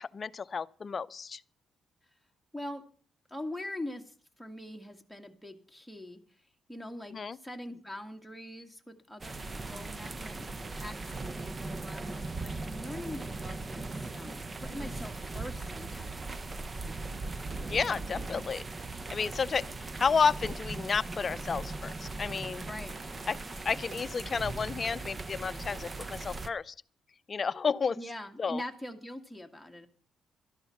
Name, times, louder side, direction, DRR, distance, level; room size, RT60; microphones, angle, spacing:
voice 1, 0.0-1.4 7.1-7.4 17.7-18.6 19.1-22.7 23.3-23.4 23.6-26.7 27.3-28.0 28.4-28.6, left 5 dB, 40° left, 0.6 m, -31 dB
voice 2, 3.3-6.2 6.7-7.2 7.4-16.5 22.7-22.9 28.0-29.9, left 1 dB, ahead, 1.9 m, -43 dB
sound 1, 9.2-26.5, right 3 dB, 30° right, 0.8 m, -39 dB
12.5 x 11.5 x 5.9 m
cardioid pair, 90°, 0 cm